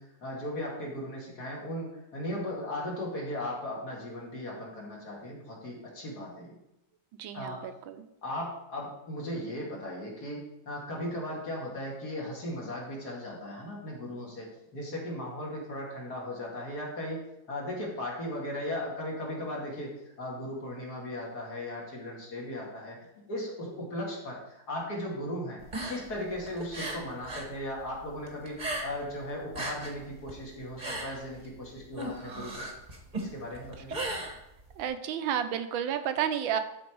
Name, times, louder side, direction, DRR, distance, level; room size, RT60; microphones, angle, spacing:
voice 1, 0.0-6.6 7.3-7.6 8.2-19.9 20.2-23.0 23.3-25.6 25.9-32.7 33.2-34.0, left 1 dB, 50° left, -3 dB, 2.8 m, -37 dB
voice 2, 7.2-8.0 34.8-36.6, right 9 dB, 75° right, 10 dB, 1.4 m, -31 dB
sound 1, 25.6-27.5 27.8-29.1 29.4-34.9, right 2 dB, 25° right, 1.2 m, -37 dB
12.0 x 4.5 x 4.7 m, 0.85 s
omnidirectional pair, 2.2 m